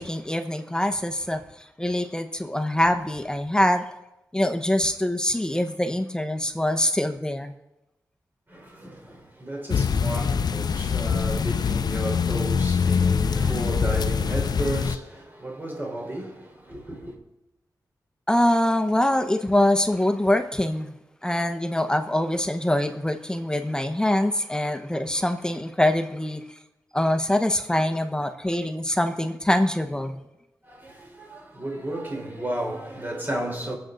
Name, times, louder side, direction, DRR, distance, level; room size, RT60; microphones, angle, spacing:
voice 1, 0.0-1.4 1.8-3.8 4.3-7.5 18.3-20.9 21.2-26.4 26.9-30.2, left 1 dB, 10° left, 1.0 m, -24 dB
voice 2, 8.5-17.2 30.6-33.7, right 1 dB, 30° right, 4.2 m, -33 dB
sound 1, 9.7-15.0, left 6 dB, 70° left, 0.6 m, -24 dB
23.0 x 7.8 x 4.0 m
cardioid pair, 75°, 7 cm